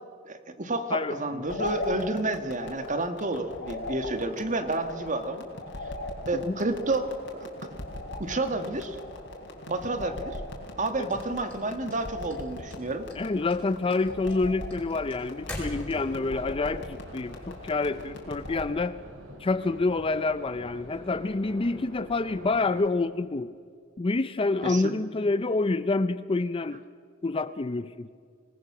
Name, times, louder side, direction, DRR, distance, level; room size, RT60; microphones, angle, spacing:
voice 1, 0.2-5.4 6.3-7.1 8.2-9.0 9.7-10.4 10.8-13.1 24.6-24.9, right 2 dB, 40° right, 8 dB, 1.4 m, -30 dB
voice 2, 0.9-1.4 6.3-6.6 11.0-11.2 13.1-19.0 19.4-23.5 24.0-26.8 27.2-28.1, left 3 dB, 25° left, 13 dB, 0.4 m, -28 dB
sound 1, 1.4-18.7, left 2 dB, 60° left, 3.7 m, -39 dB
sound 2, 11.1-12.4 12.7-13.2 13.5-16.3, left 1 dB, 5° left, 5.2 m, -39 dB
sound 3, 15.4-22.9, equal, 65° right, 4.2 m, -48 dB
26.0 x 19.0 x 6.0 m, 2.1 s
head